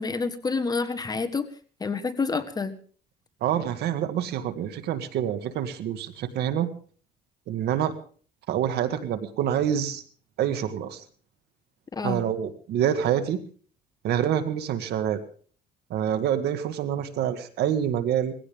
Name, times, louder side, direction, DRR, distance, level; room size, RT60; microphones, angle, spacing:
voice 1, 0.0-1.5 1.8-2.8 11.9-12.2, left 4 dB, 25° left, 9 dB, 1.4 m, -28 dB
voice 2, 3.4-6.7 7.5-7.9 8.5-10.0 10.4-11.0 12.0-13.4 14.0-15.2 15.9-18.3, right 10 dB, 75° right, 10 dB, 1.9 m, -26 dB
20.0 x 16.0 x 3.6 m, 0.43 s
cardioid pair, 110°, 17 cm